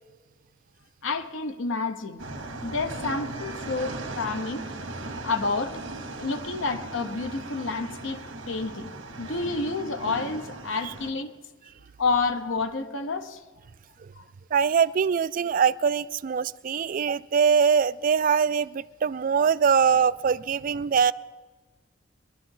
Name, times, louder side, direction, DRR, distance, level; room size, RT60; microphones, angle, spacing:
voice 1, 1.0-2.3 2.6-4.6 5.2-5.8 6.2-8.2 8.5-8.9 9.2-11.3 12.0-13.4 14.2-14.3, left 4 dB, 80° left, 0.9 m, -29 dB
sound 1, 2.2-11.1, right 2 dB, 75° right, 1.9 m, -38 dB
voice 2, 14.5-21.1, right 6 dB, 45° right, 0.3 m, -23 dB
22.5 x 11.5 x 3.8 m
head